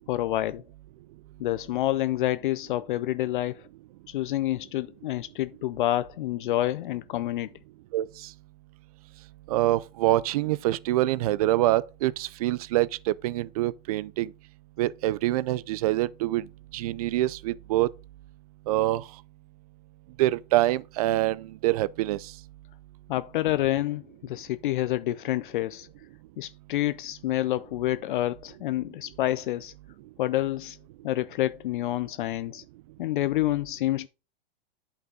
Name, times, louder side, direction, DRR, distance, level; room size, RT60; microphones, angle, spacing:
voice 1, 0.1-0.6 1.4-3.7 4.1-7.5 23.1-25.9 26.4-29.7 30.2-30.8 31.0-32.6 33.0-34.1, left 14 dB, 60° left, 0.5 m, -28 dB
voice 2, 7.9-8.3 9.5-14.3 14.8-17.9 18.7-19.1 20.2-22.3, right 15 dB, 40° right, 0.4 m, -25 dB
9.2 x 5.6 x 3.7 m
hypercardioid pair, 155°, 29 cm